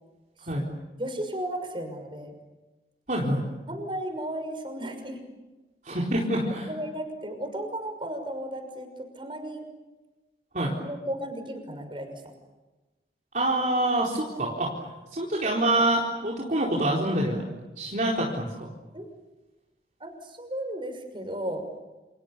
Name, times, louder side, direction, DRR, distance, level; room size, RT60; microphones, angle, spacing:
voice 1, 1.0-2.4 3.7-5.2 6.4-9.7 10.8-12.2 18.9-19.1 20.0-21.7, right 1 dB, 30° right, 6 dB, 6.1 m, -34 dB
voice 2, 3.1-3.4 5.8-6.7 10.5-10.7 13.3-14.8 15.1-17.4 17.8-18.7, right 1 dB, 45° right, -3 dB, 4.3 m, -26 dB
29.5 x 28.5 x 7.0 m, 1.1 s
head